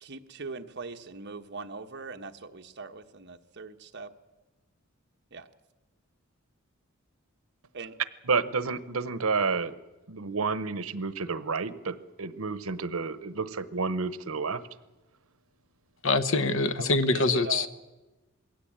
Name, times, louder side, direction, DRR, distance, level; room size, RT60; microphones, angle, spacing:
voice 1, 0.0-4.1 5.3-5.5 7.7-8.0 16.8-17.7, right 4 dB, 55° right, 1.2 m, -40 dB
voice 2, 8.3-9.7 10.1-14.6, right 4 dB, 85° right, 1.0 m, -30 dB
voice 3, 16.0-17.7, left 3 dB, 65° left, 1.1 m, -24 dB
21.0 x 17.0 x 8.8 m
head